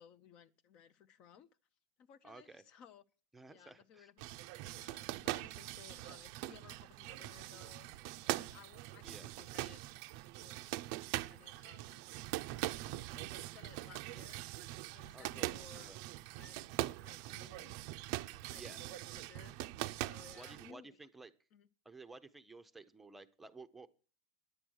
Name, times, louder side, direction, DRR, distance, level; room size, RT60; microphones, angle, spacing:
voice 1, 0.0-1.5 2.0-3.0 3.5-4.3 4.6-9.8 10.4-10.6 11.2-12.0 13.1-16.0 16.2-17.8 18.2-19.6 19.9-21.0 21.5-21.7, left 8 dB, 40° left, 0.5 m, -60 dB
voice 2, 2.2-2.6 3.3-4.1 9.0-9.3 15.1-15.5 15.7-16.0 18.5-18.8 20.3-21.3 21.8-23.9, right 3 dB, 5° right, 0.6 m, -54 dB
sound 1, 4.2-20.7, right 16 dB, 50° right, 0.4 m, -42 dB
10.0 x 8.7 x 6.3 m
supercardioid pair, 150°, 2 cm